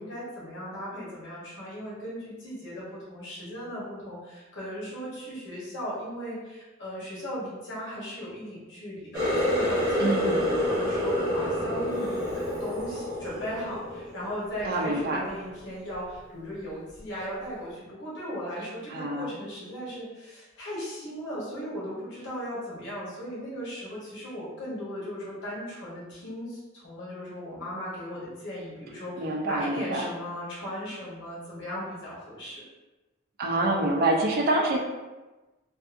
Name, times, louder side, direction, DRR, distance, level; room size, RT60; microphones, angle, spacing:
voice 1, 0.0-32.6, equal, 60° left, -8 dB, 1.0 m, -37 dB
Water tap faucet, 9.1-14.6 15.0-15.5 15.9-16.2 17.0-17.1, left 1 dB, 15° right, 0.8 m, -28 dB
voice 2, 10.0-10.5 14.6-15.2 18.9-19.3 29.2-30.1 33.4-34.8, right 2 dB, 45° right, 0 dB, 0.3 m, -26 dB
2.6 x 2.4 x 2.5 m, 1.1 s
head